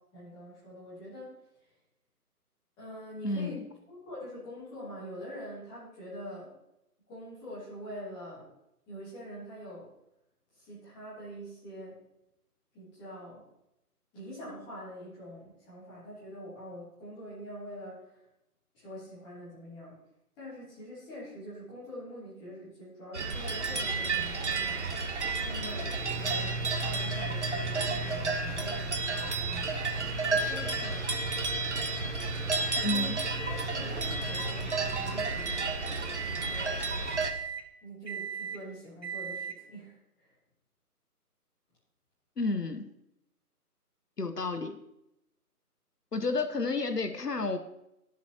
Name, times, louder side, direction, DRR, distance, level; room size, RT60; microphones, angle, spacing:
voice 1, 0.1-1.3 2.8-6.5 7.1-8.5 8.9-9.9 10.6-12.0 12.7-13.4 14.1-18.2 18.7-20.0 20.4-24.9 25.4-29.8 30.2-31.3 32.6-35.7 36.2-36.9 37.8-40.3 46.2-46.4, equal, 10° left, -9 dB, 3.0 m, -45 dB
voice 2, 3.2-3.6 32.8-33.2 42.4-42.8 44.2-44.8 46.1-47.6, left 3 dB, 80° left, 8 dB, 1.2 m, -31 dB
sound 1, 23.1-37.3, right 3 dB, 45° right, 1.2 m, -32 dB
sound 2, 23.8-24.1 24.5-24.8 25.2-35.7 36.1-36.7 37.1-37.7 38.1-38.6 39.0-39.6, right 4 dB, 85° right, 1.9 m, -40 dB
22.0 x 7.3 x 2.9 m, 0.86 s
figure-of-eight pair, 155°, 47 cm